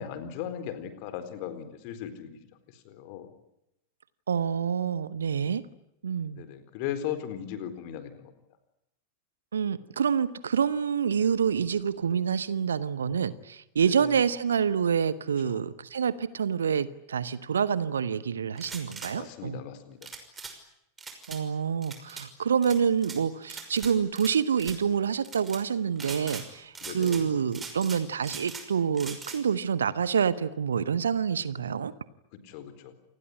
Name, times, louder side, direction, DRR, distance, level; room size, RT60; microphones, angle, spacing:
voice 1, 0.0-2.4 2.7-3.3 6.3-8.3 13.8-14.1 15.4-15.6 19.1-20.1 26.8-27.2 32.3-32.9, left 9 dB, 45° left, 11 dB, 4.1 m, -38 dB
voice 2, 4.3-5.6 6.0-6.4 9.5-19.6 21.3-31.9, right 7 dB, 70° right, 16 dB, 1.3 m, -27 dB
sound 1, 18.5-19.1 20.0-20.5 21.0-21.4 21.8-22.3 22.6-23.2 23.5-24.3 24.6-24.8 25.2-25.6 26.0-26.5 26.7-27.2 27.5-28.7 28.9-29.4, right 5 dB, 15° right, 5.8 m, -41 dB
28.0 x 20.0 x 9.9 m, 0.85 s
figure-of-eight pair, 90°, 0 cm